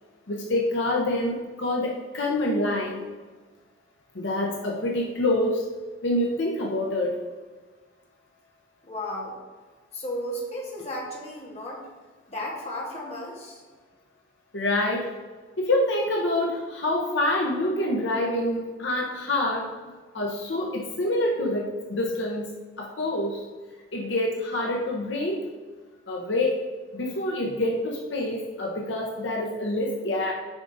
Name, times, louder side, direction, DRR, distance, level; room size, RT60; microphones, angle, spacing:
voice 1, 0.3-3.0 4.1-5.6 6.0-7.2 14.5-15.1 15.6-19.7 20.1-23.4 23.9-25.4 26.1-26.6 26.9-30.3, left 1 dB, 70° left, -1 dB, 0.8 m, -26 dB
voice 2, 8.8-9.4 9.9-11.8 12.3-13.6, left 1 dB, 35° left, -3 dB, 1.4 m, -34 dB
7.2 x 5.0 x 2.6 m, 1.4 s
head